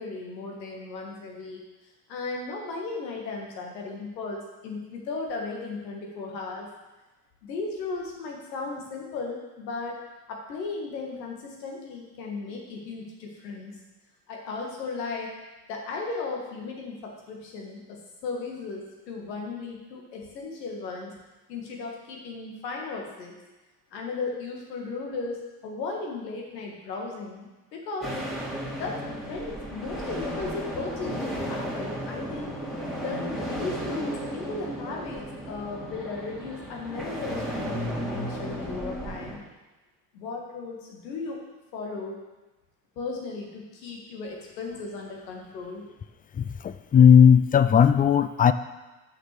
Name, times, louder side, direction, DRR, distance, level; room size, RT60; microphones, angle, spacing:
voice 1, 0.0-1.6 2.1-6.7 7.4-10.0 10.3-13.7 14.3-15.3 15.7-21.1 21.5-23.3 23.9-28.2 28.8-32.5 33.0-39.4 40.1-41.4 41.7-42.2 43.0-45.9, left 3 dB, 80° left, 0 dB, 1.9 m, -36 dB
sound 1, 28.0-39.4, equal, ahead, 2.8 m, -34 dB
voice 2, 46.3-48.5, left 8 dB, 20° left, 12 dB, 0.3 m, -17 dB
6.5 x 6.0 x 6.6 m, 1.1 s
hypercardioid pair, 60°, 49 cm